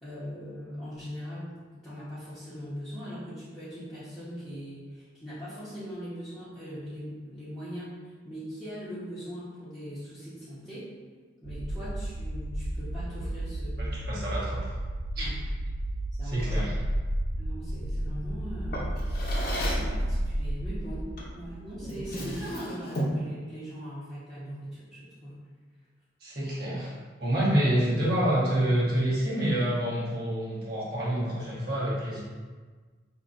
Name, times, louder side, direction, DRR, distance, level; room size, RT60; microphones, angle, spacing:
voice 1, 0.0-10.9 11.4-14.1 15.2-15.4 16.2-16.7 17.4-19.2 19.5-25.4, equal, ahead, -15 dB, 1.0 m, -40 dB
sound 1, 11.4-22.4, right 1 dB, 70° right, 0.4 m, -32 dB
voice 2, 13.8-14.7 15.2-15.3 16.3-16.7 26.2-26.9 27.2-32.2, right 1 dB, 55° right, -7 dB, 1.3 m, -27 dB
Drawer open or close, 18.7-20.0 21.2-21.4 21.8-23.3, equal, 50° left, 0.7 m, -34 dB
5.7 x 2.8 x 2.6 m, 1.4 s
head